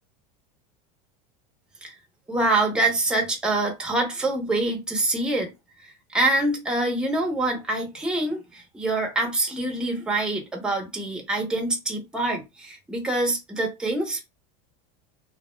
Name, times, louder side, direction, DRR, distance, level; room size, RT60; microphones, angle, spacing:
voice 1, 2.3-5.5 5.8-14.2, right 2 dB, 5° right, 0.6 m, -25 dB
2.5 x 2.0 x 3.1 m
supercardioid pair, 155°, 18 cm